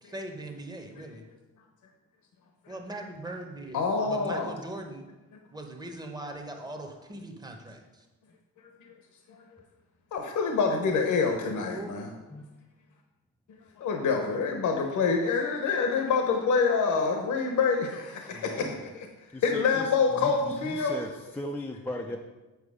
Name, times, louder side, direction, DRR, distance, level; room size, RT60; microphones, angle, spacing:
voice 1, 0.0-1.2 2.7-5.1 5.5-8.1 11.7-11.9 18.3-18.8 22.0-22.2, right 1 dB, 10° right, 3 dB, 0.8 m, -40 dB
voice 2, 3.7-4.5 9.3-9.4 10.1-12.1 13.8-18.7 19.0-19.1 19.4-21.0, left 5 dB, 65° left, 3 dB, 0.9 m, -26 dB
voice 3, 19.3-22.2, left 1 dB, 5° left, 2 dB, 0.4 m, -37 dB
8.3 x 4.7 x 4.9 m, 1.1 s
cardioid pair, 150°, 33 cm